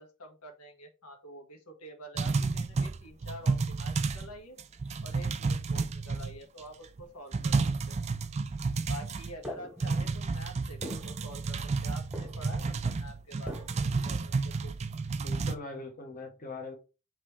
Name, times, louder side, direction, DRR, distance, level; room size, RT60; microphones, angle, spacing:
voice 1, 0.0-4.6 5.0-7.6 7.9-8.0 8.9-13.7 14.0-14.7, right 1 dB, 90° left, 3 dB, 1.5 m, -47 dB
sound 1, 2.2-4.3 4.6-6.6 7.0-7.1 7.3-9.5 9.8-15.6, right 4 dB, 30° right, 0.3 m, -31 dB
sound 2, 9.4-10.2 10.8-11.9 12.1-12.7 13.5-14.0, right 1 dB, 5° right, 0.9 m, -42 dB
voice 2, 15.2-16.8, left 3 dB, 35° left, 1 dB, 1.0 m, -41 dB
5.3 x 3.1 x 3.1 m, 0.31 s
head